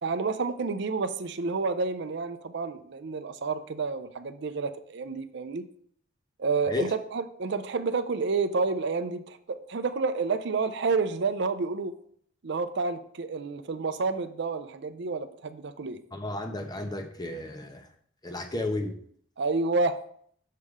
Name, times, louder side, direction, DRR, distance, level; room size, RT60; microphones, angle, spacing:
voice 1, 0.0-5.7 6.4-11.9 12.4-16.0 19.4-20.0, right 4 dB, 60° right, 11 dB, 0.5 m, -29 dB
voice 2, 16.1-17.9 18.2-19.0, left 2 dB, 20° left, 6 dB, 0.8 m, -33 dB
6.6 x 5.5 x 4.8 m, 0.62 s
head